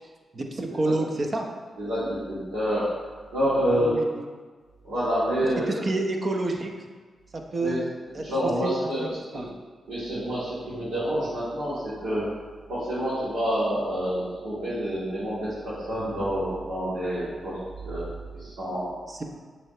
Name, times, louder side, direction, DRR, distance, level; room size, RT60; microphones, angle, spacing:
voice 1, 0.3-1.5 3.7-4.3 5.7-6.7 7.3-7.8 8.2-9.1 9.3-9.5 19.1-19.2, right 2 dB, 45° right, 2 dB, 0.9 m, -29 dB
voice 2, 1.8-2.9 3.3-4.0 4.8-5.8 7.6-7.8 8.1-9.5 9.9-12.3 12.7-18.9, equal, 80° right, -11 dB, 2.0 m, -28 dB
7.1 x 3.3 x 5.0 m, 1.5 s
supercardioid pair, 50°, 0 cm